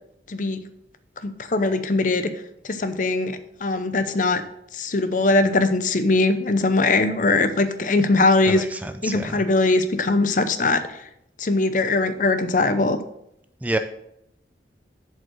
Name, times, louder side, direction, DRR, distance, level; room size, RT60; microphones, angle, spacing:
voice 1, 0.3-0.6 1.2-2.3 2.6-4.4 4.7-8.6 9.0-11.0 11.4-13.0, left 2 dB, 45° left, 11 dB, 0.6 m, -21 dB
voice 2, 8.4-9.4 13.6-13.8, right 1 dB, 10° right, 9 dB, 0.3 m, -28 dB
7.5 x 5.3 x 6.3 m, 0.79 s
head